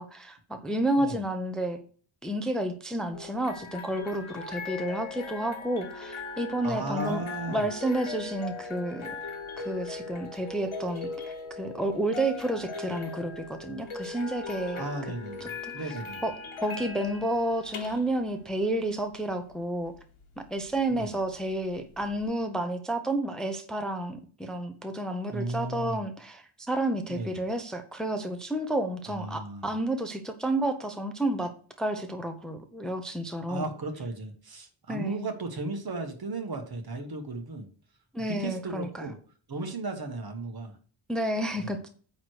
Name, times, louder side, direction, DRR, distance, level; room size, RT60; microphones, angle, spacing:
voice 1, 0.0-1.8 2.2-9.1 9.6-14.8 15.4-15.5 15.8-15.9 16.2-16.3 16.6-19.9 20.5-31.5 31.8-33.7 34.9-35.3 38.1-39.1 41.1-41.9, right 1 dB, ahead, 6 dB, 0.7 m, -30 dB
sound 1, 3.1-22.3, left 4 dB, 85° left, 1.3 m, -40 dB
voice 2, 6.6-7.6 14.7-16.2 20.9-21.2 25.3-26.0 27.1-27.4 29.1-29.7 33.5-37.7 38.3-39.2 39.5-40.8 41.6-41.8, right 2 dB, 50° right, 5 dB, 1.3 m, -35 dB
9.1 x 3.2 x 6.3 m, 0.43 s
wide cardioid pair, 135°, 47 cm